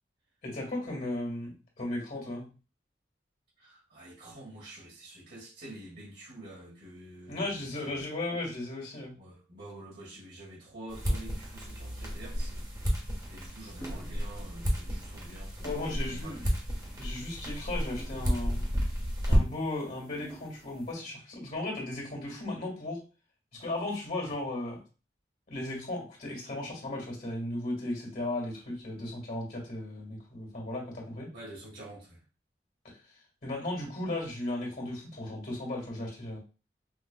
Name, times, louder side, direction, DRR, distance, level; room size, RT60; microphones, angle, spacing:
voice 1, 0.4-2.5 7.3-9.2 15.6-16.4 17.0-18.7 19.3-23.0 23.5-24.8 25.5-31.3 33.4-36.4, left 2 dB, 50° left, 1.9 m, -36 dB
voice 2, 3.6-8.0 9.1-16.6 31.3-32.2, right 1 dB, 75° right, 1.6 m, -48 dB
sound 1, 10.9-19.7, equal, 20° right, 1.3 m, -32 dB
sound 2, 13.8-14.2 14.7-14.9 15.7-16.0 16.8-17.1 17.9-18.8 20.2-20.7, right 1 dB, 5° left, 0.5 m, -47 dB
5.9 x 2.4 x 2.3 m
head